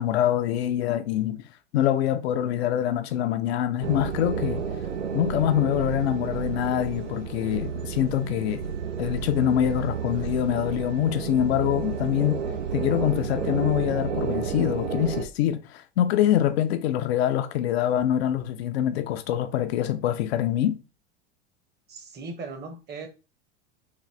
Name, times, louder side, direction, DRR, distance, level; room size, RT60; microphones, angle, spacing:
voice 1, 0.0-1.4 1.7-4.6 5.1-8.6 9.0-12.4 12.7-20.8, left 11 dB, 60° left, 0.5 m, -25 dB
sound 1, 3.8-15.3, right 6 dB, 80° right, 0.7 m, -31 dB
voice 2, 21.9-23.1, right 3 dB, 25° right, 0.9 m, -38 dB
3.8 x 2.5 x 3.1 m
hypercardioid pair, 85°, 36 cm